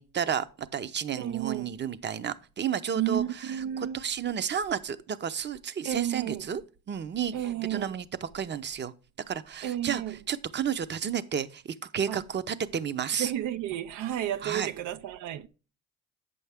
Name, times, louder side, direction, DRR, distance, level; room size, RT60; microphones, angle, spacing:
voice 1, 0.0-8.9 9.3-13.3 14.4-14.7, right 8 dB, 35° right, 0.6 m, -32 dB
voice 2, 1.2-1.7 3.0-4.0 5.8-6.5 7.3-7.9 9.6-10.2 12.1-12.2 13.2-15.5, right 12 dB, 90° right, 0.5 m, -32 dB
8.4 x 6.9 x 3.5 m
cardioid pair, 90°, 30 cm